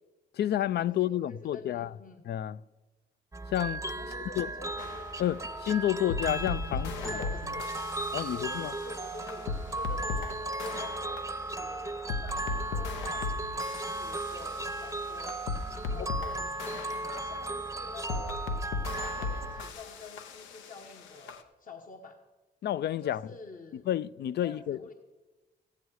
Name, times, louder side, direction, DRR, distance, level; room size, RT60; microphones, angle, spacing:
voice 1, 0.3-1.9 2.3-2.6 3.5-3.8 4.4-4.5 5.2-7.3 8.1-8.7 16.0-16.1 22.6-23.2 23.7-24.8, left 12 dB, 60° left, 0.4 m, -30 dB
voice 2, 0.9-2.2 4.0-5.0 5.3-5.5 6.7-7.7 8.3-15.4 15.7-16.6 16.9-18.6 19.1-22.2 23.0-23.9 24.4-24.9, left 3 dB, 45° left, 1.2 m, -48 dB
sound 1, 3.3-19.7, right 2 dB, 15° right, 0.7 m, -36 dB
sound 2, 4.8-21.4, left 4 dB, 90° left, 0.8 m, -38 dB
14.5 x 9.6 x 4.8 m
supercardioid pair, 60°, 19 cm